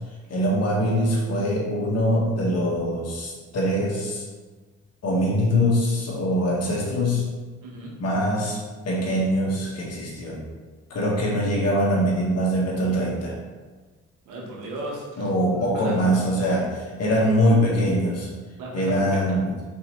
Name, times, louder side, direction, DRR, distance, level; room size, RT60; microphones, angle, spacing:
voice 1, 0.3-4.2 5.0-7.2 8.0-8.6 8.8-10.4 10.9-13.3 15.2-18.3 18.7-19.5, equal, 55° left, -3 dB, 1.4 m, -23 dB
voice 2, 7.6-7.9 14.3-15.3 15.6-16.0 18.6-19.4, right 1 dB, 90° right, -3 dB, 1.2 m, -35 dB
4.0 x 4.0 x 3.0 m, 1.4 s
cardioid pair, 90°, 30 cm